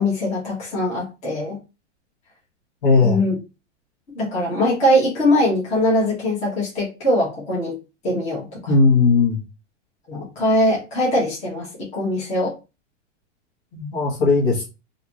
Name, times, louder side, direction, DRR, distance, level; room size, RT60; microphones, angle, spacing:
voice 1, 0.0-1.6 3.0-3.4 4.1-7.7 8.0-8.7 10.1-12.5 13.7-13.9, left 1 dB, 20° left, -6 dB, 1.3 m, -21 dB
voice 2, 2.8-3.2 8.7-9.4 13.9-14.6, left 4 dB, 45° left, -3 dB, 1.5 m, -17 dB
3.2 x 2.7 x 3.0 m, 0.29 s
supercardioid pair, 165°, 36 cm